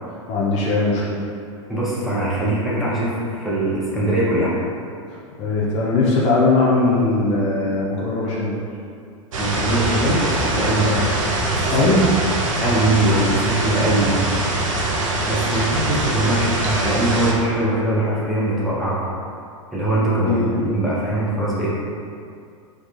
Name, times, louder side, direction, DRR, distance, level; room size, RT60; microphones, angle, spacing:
voice 1, 0.3-1.2 5.1-8.6 10.8-11.0 11.7-12.1 20.3-20.6, left 2 dB, 40° left, -5 dB, 0.5 m, -20 dB
voice 2, 1.7-4.5 9.4-10.9 11.5-11.9 12.6-14.2 15.2-19.1 19.7-20.3 20.6-21.7, right 1 dB, ahead, -9 dB, 0.7 m, -21 dB
sound 1, 9.3-17.3, right 2 dB, 80° right, 0.5 m, -23 dB
2.3 x 2.2 x 2.9 m, 2.4 s
hypercardioid pair, 100°, 17 cm